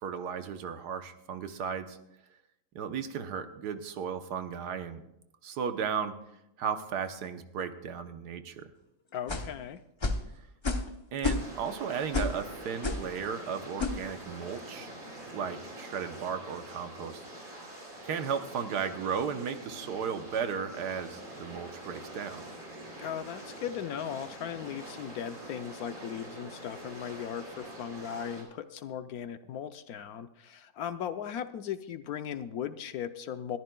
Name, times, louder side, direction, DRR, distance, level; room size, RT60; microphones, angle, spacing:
voice 1, 0.0-2.0 2.7-5.0 5.4-6.2 6.6-8.7 11.1-14.9 15.3-17.2 18.0-22.4, right 7 dB, 75° right, 9 dB, 1.4 m, -35 dB
voice 2, 9.1-9.8 23.0-33.6, left 9 dB, 70° left, 10 dB, 1.1 m, -37 dB
sound 1, 9.3-9.5 10.0-10.3 10.6-10.9 11.2-11.7 12.1-12.4 12.8-13.1 13.8-14.0, left 3 dB, 30° left, 0.5 m, -30 dB
sound 2, 11.3-28.4, right 1 dB, 30° right, 3.4 m, -45 dB
21.0 x 14.0 x 2.3 m, 0.84 s
omnidirectional pair, 1.8 m